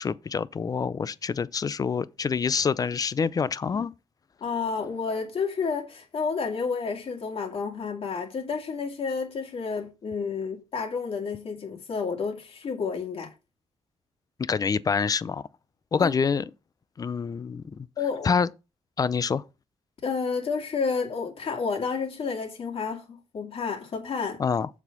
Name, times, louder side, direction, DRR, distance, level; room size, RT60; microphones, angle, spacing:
voice 1, 0.0-3.9 14.4-15.4 15.9-16.5 17.0-17.9 18.2-18.5 19.0-19.4 24.4-24.7, left 5 dB, 30° left, 0.5 m, -26 dB
voice 2, 4.4-13.3 16.0-16.1 18.0-18.3 20.0-24.4, left 5 dB, 55° left, 2.4 m, -30 dB
7.2 x 4.1 x 6.7 m
cardioid pair, 125°, 12 cm